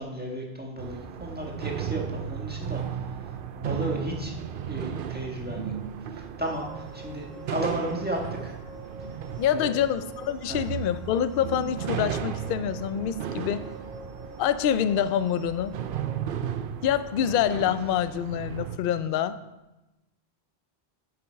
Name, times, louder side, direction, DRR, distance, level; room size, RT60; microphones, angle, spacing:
voice 1, 0.0-3.2 3.6-4.3 4.7-5.7 6.1-8.6 9.5-9.8 10.5-10.6, right 1 dB, 10° right, -1 dB, 1.6 m, -34 dB
sound 1, 0.8-18.8, right 9 dB, 60° right, 0.7 m, -35 dB
sound 2, 6.4-16.1, equal, 35° left, 2.4 m, -46 dB
voice 2, 9.4-13.6 14.4-15.8 16.8-19.4, left 9 dB, 60° left, 12 dB, 0.7 m, -26 dB
10.0 x 7.0 x 4.6 m, 1.0 s
omnidirectional pair, 1.1 m